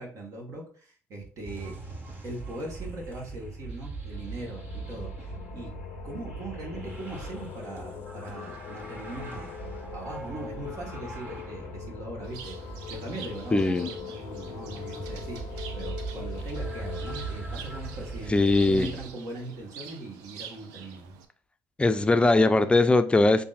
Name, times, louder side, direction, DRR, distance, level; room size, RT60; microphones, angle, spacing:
voice 1, 0.0-1.7 2.2-5.7 6.0-15.4 15.7-21.1, right 2 dB, 55° right, 1.5 m, -40 dB
sound 1, 1.4-19.1, right 3 dB, 30° right, 1.7 m, -40 dB
sound 2, 4.1-19.7, left 9 dB, 70° left, 0.6 m, -43 dB
Bird, 12.2-21.2, right 7 dB, 80° right, 0.6 m, -46 dB
voice 2, 13.5-13.9 18.3-18.9 21.8-23.4, left 2 dB, 15° left, 0.5 m, -21 dB
6.9 x 2.7 x 2.5 m
supercardioid pair, 70°, 6 cm